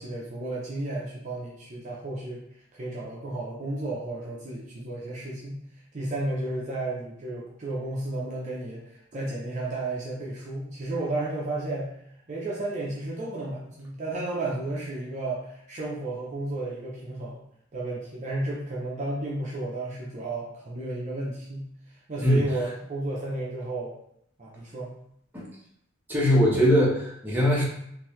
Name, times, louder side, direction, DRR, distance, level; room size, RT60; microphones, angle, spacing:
voice 1, 0.0-2.4 2.7-5.6 5.9-11.9 12.3-17.4 17.7-23.9 24.4-25.0, right 2 dB, 35° right, -4 dB, 0.6 m, -33 dB
voice 2, 26.1-27.6, equal, 10° right, -5 dB, 0.9 m, -21 dB
3.7 x 2.6 x 3.0 m, 0.73 s
head